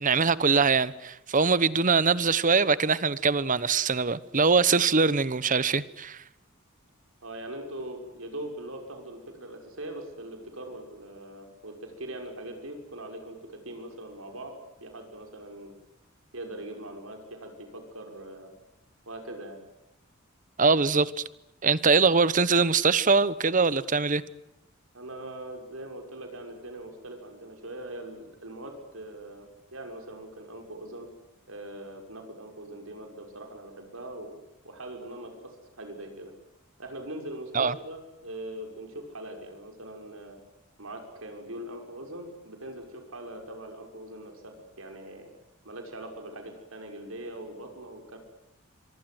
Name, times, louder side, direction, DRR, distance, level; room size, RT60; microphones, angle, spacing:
voice 1, 0.0-6.2 20.6-21.1 21.6-24.2 37.5-37.7, right 4 dB, 40° right, 1.1 m, -23 dB
voice 2, 7.2-14.6 14.8-15.8 16.3-18.5 19.1-19.6 24.9-31.1 31.5-34.3 34.6-36.3 36.8-40.4 40.8-45.3 45.6-48.2, right 1 dB, 70° right, 6.1 m, -41 dB
25.0 x 24.5 x 7.9 m
head